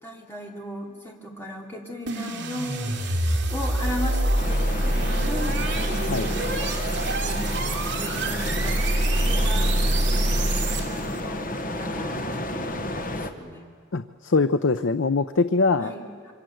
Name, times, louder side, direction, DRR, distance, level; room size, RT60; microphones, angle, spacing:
voice 1, 0.0-2.9 3.5-6.4 7.2-8.9 9.2-9.7 10.4-11.5 11.8-13.6 15.8-16.3, equal, 10° left, -1 dB, 3.1 m, -37 dB
sound 1, 2.1-11.2, right 1 dB, 65° right, 3.2 m, -25 dB
sound 2, 4.4-13.3, left 1 dB, 45° left, 1.4 m, -31 dB
voice 2, 13.9-15.9, left 3 dB, 80° left, 11 dB, 0.7 m, -23 dB
28.0 x 24.5 x 7.9 m, 2.1 s
head